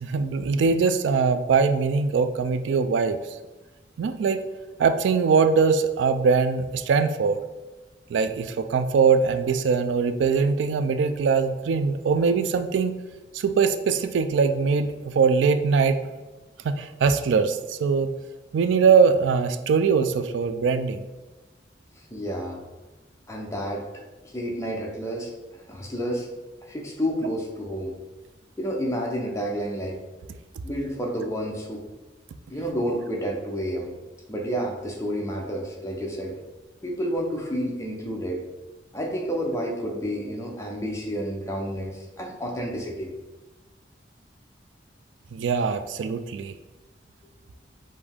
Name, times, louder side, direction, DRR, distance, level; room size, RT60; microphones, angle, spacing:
voice 1, 0.0-3.2 4.0-4.4 4.8-7.4 8.1-13.0 13.3-16.0 16.6-18.1 18.5-21.1 45.3-46.5, right 5 dB, 80° right, 10 dB, 0.3 m, -22 dB
voice 2, 22.1-22.6 23.3-23.9 24.2-25.3 25.7-26.3 26.6-28.0 28.6-30.0 30.6-31.8 32.5-33.9 34.3-36.3 36.8-38.4 38.9-43.1, equal, 15° left, -1 dB, 0.6 m, -30 dB
5.1 x 2.7 x 3.5 m, 1.2 s
head